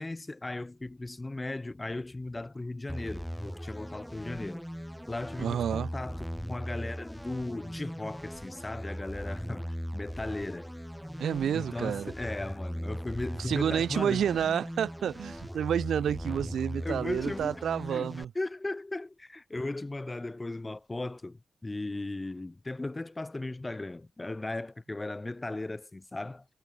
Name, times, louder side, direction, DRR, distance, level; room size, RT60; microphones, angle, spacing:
voice 1, 0.0-4.6 5.1-10.7 11.5-14.3 16.8-17.5 17.9-18.1 18.3-26.5, left 2 dB, 25° left, 1.1 m, -37 dB
sound 1, 2.9-18.3, equal, ahead, 3.9 m, -39 dB
voice 2, 5.4-5.9 11.2-12.1 13.5-18.3, right 9 dB, 80° right, 0.5 m, -29 dB
supercardioid pair, 50°, 0 cm